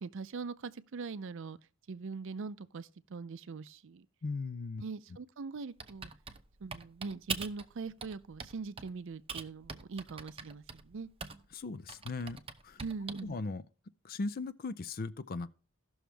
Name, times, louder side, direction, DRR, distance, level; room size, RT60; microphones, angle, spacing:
voice 1, 0.0-1.6 1.9-4.1 4.8-6.1 6.6-11.1 12.8-13.4, right 4 dB, 65° right, 0.5 m, -42 dB
voice 2, 4.2-4.8 11.5-12.8 13.2-13.6 14.0-15.5, left 3 dB, 45° left, 0.5 m, -38 dB
Typing, 5.8-7.7 8.0-8.9 9.3-11.5 11.9-13.3, right 5 dB, 25° right, 0.7 m, -42 dB
16.0 x 6.2 x 3.4 m
head